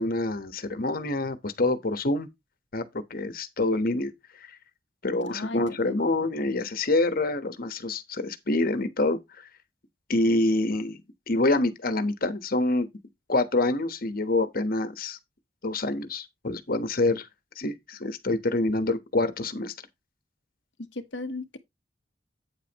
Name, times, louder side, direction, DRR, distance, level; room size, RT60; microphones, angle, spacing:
voice 1, 0.0-2.3 2.7-2.8 3.1-4.1 5.0-9.5 10.1-11.0 11.3-12.9 13.3-15.2 15.6-17.3 17.6-19.7, left 2 dB, 55° left, 1.3 m, -26 dB
voice 2, 5.3-5.8 20.8-21.6, left 2 dB, 85° left, 1.2 m, -36 dB
8.9 x 8.8 x 3.0 m
head